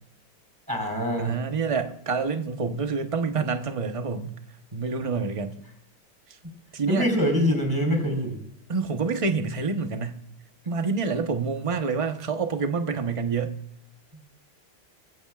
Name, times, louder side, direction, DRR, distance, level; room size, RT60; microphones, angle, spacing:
voice 1, 0.7-1.3 6.9-8.4, equal, 10° right, 2 dB, 4.4 m, -24 dB
voice 2, 1.2-4.4 4.7-5.6 6.3-6.4 6.7-7.1 8.7-10.2 10.6-13.6, right 4 dB, 25° right, 6 dB, 0.7 m, -27 dB
25.5 x 15.0 x 2.5 m, 0.74 s
omnidirectional pair, 2.3 m